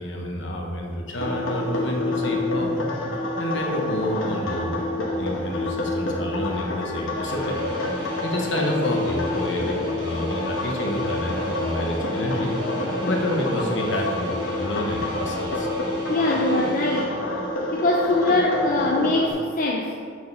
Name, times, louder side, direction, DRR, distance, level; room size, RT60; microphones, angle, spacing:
voice 1, 0.0-2.8 3.4-4.8 5.2-7.6 8.2-12.6 13.0-15.7, left 1 dB, 65° left, 0 dB, 1.1 m, -29 dB
sound 1, 1.1-19.3, left 2 dB, 85° left, 1.1 m, -27 dB
sound 2, 7.3-17.0, equal, 25° right, 1.1 m, -42 dB
voice 2, 16.0-17.4 17.7-20.0, left 2 dB, 45° left, -1 dB, 0.5 m, -23 dB
6.3 x 4.7 x 5.5 m, 2.2 s
head